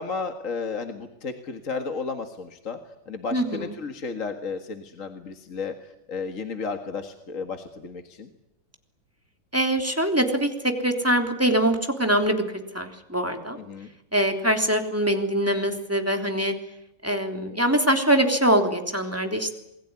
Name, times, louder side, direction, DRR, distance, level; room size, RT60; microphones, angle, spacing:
voice 1, 0.0-2.8 3.1-5.7 6.1-8.3 13.6-13.9, left 4 dB, 40° left, 6 dB, 2.1 m, -33 dB
voice 2, 3.3-3.7 9.5-12.4 12.7-13.6 14.1-16.5 17.0-19.6, right 1 dB, 5° right, 5 dB, 3.3 m, -23 dB
28.0 x 21.0 x 9.8 m, 0.87 s
omnidirectional pair, 2.2 m